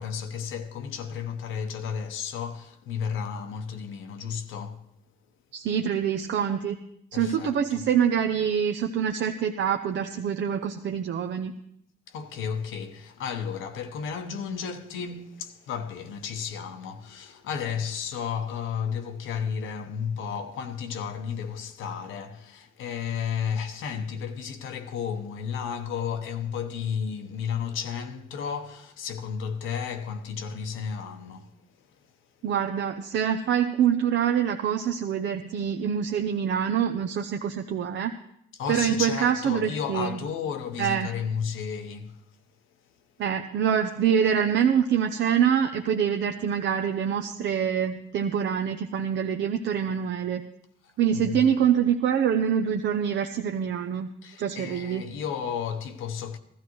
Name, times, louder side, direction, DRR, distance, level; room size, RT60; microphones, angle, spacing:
voice 1, 0.0-4.8 7.1-7.8 12.1-32.0 38.5-42.2 50.8-51.5 54.2-56.4, left 7 dB, 85° left, 1.0 m, -33 dB
voice 2, 5.5-6.8 7.1-11.5 32.4-38.1 38.7-40.2 40.8-41.1 43.2-50.4 51.0-54.1 54.4-55.2, right 8 dB, 70° right, 0.7 m, -25 dB
15.5 x 13.5 x 3.1 m
cardioid pair, 90°, 20 cm